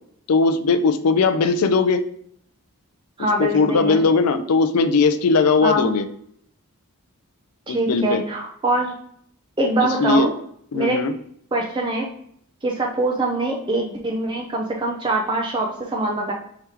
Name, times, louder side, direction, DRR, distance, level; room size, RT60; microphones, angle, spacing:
voice 1, 0.3-2.0 3.4-6.1 7.7-8.3 9.8-10.3 10.7-11.1, left 4 dB, 85° left, 10 dB, 0.4 m, -19 dB
voice 2, 3.2-4.0 5.6-5.9 7.7-8.9 9.6-10.3 10.7-11.0 11.5-12.1 12.6-16.3, right 1 dB, 20° right, 0 dB, 0.4 m, -23 dB
4.8 x 2.9 x 3.4 m, 0.66 s
head